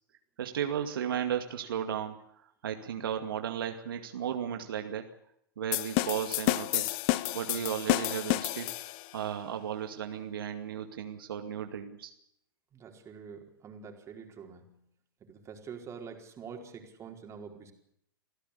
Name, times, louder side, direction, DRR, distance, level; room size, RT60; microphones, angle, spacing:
voice 1, 0.4-5.1 5.6-7.0 7.3-8.7 9.1-12.1, right 9 dB, 70° right, 5 dB, 2.3 m, -35 dB
sound 1, 5.7-9.1, left 19 dB, 40° left, 1.0 m, -30 dB
voice 2, 12.7-14.8 15.2-17.7, right 6 dB, 25° right, 3 dB, 4.6 m, -46 dB
26.5 x 16.0 x 8.5 m, 0.74 s
hypercardioid pair, 115°, 12 cm